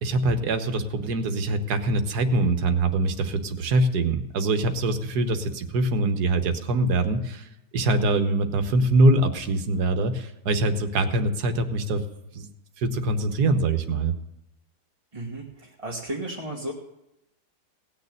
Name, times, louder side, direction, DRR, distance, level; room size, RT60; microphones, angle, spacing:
voice 1, 0.0-7.5 7.7-12.0 12.3-12.5 12.8-14.2, right 2 dB, 70° right, 7 dB, 1.7 m, -23 dB
voice 2, 15.1-16.7, right 1 dB, 20° right, -3 dB, 1.4 m, -34 dB
17.5 x 6.8 x 8.8 m, 0.86 s
omnidirectional pair, 1.8 m